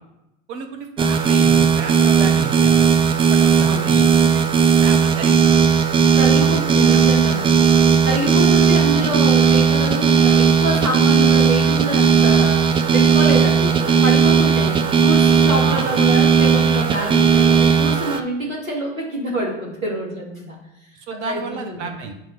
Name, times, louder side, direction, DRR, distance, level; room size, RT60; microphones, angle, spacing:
voice 1, 0.5-4.4 4.8-5.7 6.4-7.0 15.6-15.9 21.1-22.1, right 5 dB, 60° right, 5 dB, 1.4 m, -31 dB
sound 1, 1.0-18.2, right 6 dB, 15° right, 0.5 m, -16 dB
voice 2, 3.7-4.0 6.1-7.8 8.0-12.7 12.9-20.6 21.2-22.0, right 1 dB, 80° right, -2 dB, 2.9 m, -26 dB
7.5 x 5.4 x 5.3 m, 0.88 s
figure-of-eight pair, 90°, 39 cm